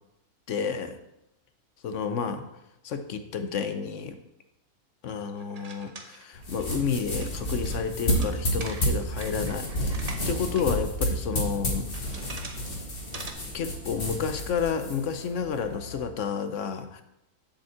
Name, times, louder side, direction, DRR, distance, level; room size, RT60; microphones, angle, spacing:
voice 1, 0.5-0.9 1.8-2.4 2.8-4.2 5.0-10.0 10.3-12.2 13.5-17.0, left 6 dB, 65° left, 9 dB, 1.0 m, -30 dB
sound 1, 5.4-10.6 11.0-11.1 11.8-12.7 12.9-13.3, right 3 dB, 35° right, 0.8 m, -43 dB
sound 2, 6.3-16.0, equal, 40° left, 1.9 m, -31 dB
7.2 x 5.2 x 7.2 m, 0.86 s
omnidirectional pair, 1.4 m